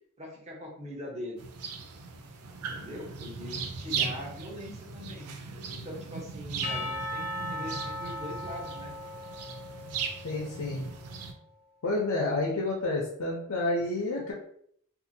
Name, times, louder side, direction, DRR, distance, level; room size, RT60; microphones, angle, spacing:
voice 1, 0.2-1.4 2.7-5.3 5.7-9.0, left 1 dB, 30° right, -2 dB, 0.8 m, -42 dB
sound 1, 1.4-11.3, right 6 dB, 75° right, 0.4 m, -38 dB
Percussion / Church bell, 6.6-11.0, left 1 dB, 45° left, 0.5 m, -38 dB
voice 2, 10.2-10.9 11.8-14.3, left 2 dB, 90° left, -2 dB, 0.6 m, -30 dB
2.7 x 2.4 x 2.6 m, 0.66 s
head